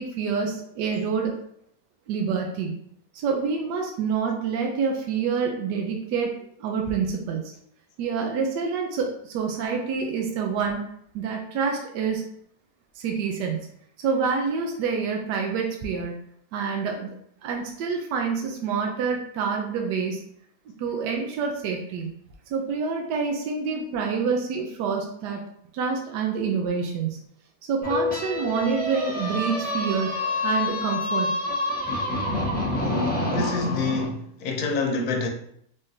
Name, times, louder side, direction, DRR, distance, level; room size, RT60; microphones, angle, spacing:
voice 1, 0.0-1.3 2.1-2.7 3.1-6.3 6.6-7.4 8.0-10.8 11.1-12.2 13.0-13.6 14.0-16.1 16.5-17.1 17.4-20.2 20.8-22.1 22.5-25.4 25.7-27.2 27.7-30.1 30.4-31.3, right 5 dB, 85° right, 1.2 m, -27 dB
sound 1, 27.8-34.1, left 2 dB, 5° left, 0.8 m, -27 dB
voice 2, 32.8-35.3, left 3 dB, 70° left, 1.1 m, -27 dB
3.6 x 3.3 x 2.6 m
omnidirectional pair, 1.8 m